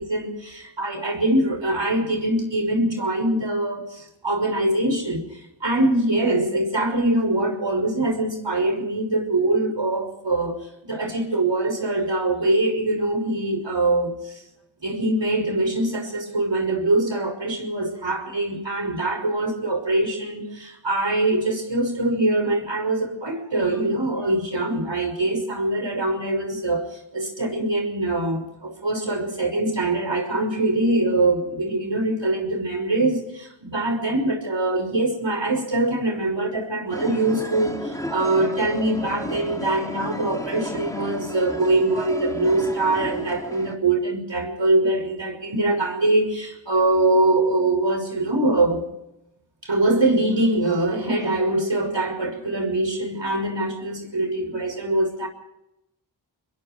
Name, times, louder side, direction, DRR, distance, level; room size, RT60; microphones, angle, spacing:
voice 1, 0.0-14.4 14.8-48.9 49.6-55.3, right 2 dB, 65° right, 5 dB, 6.1 m, -23 dB
sound 1, 36.9-43.8, equal, 5° left, 3.1 m, -33 dB
27.0 x 21.5 x 4.5 m, 0.87 s
wide cardioid pair, 40°, 48 cm